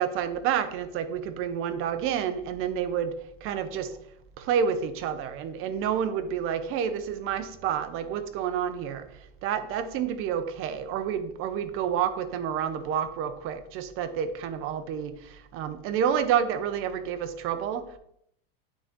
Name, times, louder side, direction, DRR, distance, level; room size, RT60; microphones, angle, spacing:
voice 1, 0.0-4.0 4.4-18.0, right 8 dB, 45° right, 11 dB, 0.9 m, -29 dB
9.3 x 4.1 x 3.7 m, 0.73 s
supercardioid pair, 120°, 30 cm